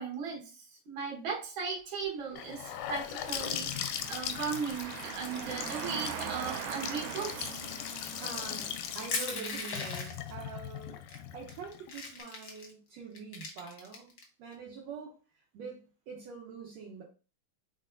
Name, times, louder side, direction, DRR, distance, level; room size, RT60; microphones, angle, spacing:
voice 1, 0.0-7.6, right 5 dB, 50° right, -2 dB, 1.9 m, -37 dB
Gurgling / Sink (filling or washing) / Bathtub (filling or washing), 2.4-12.2, left 10 dB, 90° left, 2.1 m, -39 dB
sound 1, 2.6-9.4, right 8 dB, 85° right, 2.0 m, -42 dB
voice 2, 8.2-11.0 11.3-14.1 14.4-17.0, right 5 dB, 70° right, -2 dB, 2.0 m, -45 dB
Crushing, 9.1-10.3 11.1-11.2 11.5-12.7 13.1-14.2, left 4 dB, 55° left, 1.2 m, -37 dB
4.7 x 4.4 x 2.6 m, 0.34 s
omnidirectional pair, 3.5 m